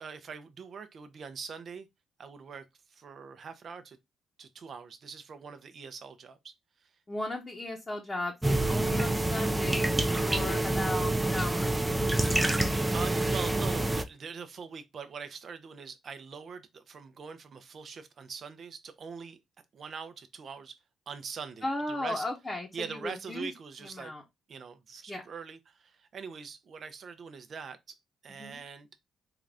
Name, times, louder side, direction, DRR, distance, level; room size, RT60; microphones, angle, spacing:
voice 1, 0.0-1.9 2.2-4.0 4.4-6.5 6.8-6.9 12.9-19.4 19.7-20.8 21.1-22.2 22.7-24.1 24.5-28.0 28.2-28.9, right 6 dB, 50° right, 0.6 m, -43 dB
voice 2, 7.1-10.0 10.2-12.0 21.6-23.5 23.8-24.2 25.1-25.2 28.3-28.6, left 2 dB, 20° left, 0.9 m, -36 dB
sound 1, 8.4-14.0, right 2 dB, 10° right, 0.5 m, -27 dB
3.8 x 2.5 x 3.3 m
cardioid pair, 90°, 0 cm